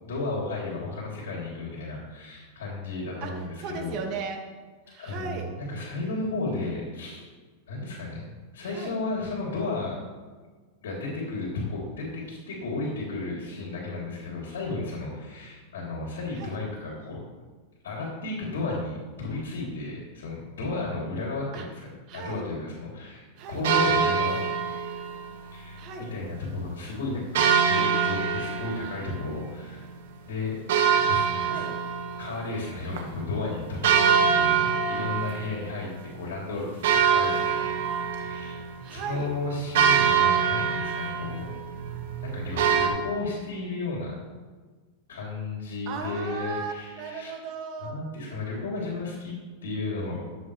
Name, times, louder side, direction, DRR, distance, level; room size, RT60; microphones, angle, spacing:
voice 1, 0.0-4.0 5.0-7.3 7.7-10.0 10.8-17.2 17.8-21.7 22.1-24.4 25.5-25.8 26.1-29.9 30.3-30.6 31.0-31.7 32.2-35.9 36.1-38.6 38.9-41.5 42.2-44.2 45.1-47.3 47.8-49.3 49.6-50.3, left 3 dB, 90° left, -3 dB, 3.1 m, -33 dB
voice 2, 3.2-4.4 4.9-5.5 8.6-9.0 16.4-16.6 21.5-21.6 22.1-22.5 23.4-23.6 25.8-26.1 31.3-31.7 38.8-39.3 45.9-48.0, right 5 dB, 45° right, 1 dB, 1.9 m, -36 dB
sound 1, 23.6-25.3 27.3-29.8 30.7-32.7 33.0-33.1 33.8-35.8 36.3-36.4 36.8-42.9, right 7 dB, 70° right, 1.5 m, -24 dB
13.5 x 8.1 x 3.3 m, 1.4 s
supercardioid pair, 140°, 0 cm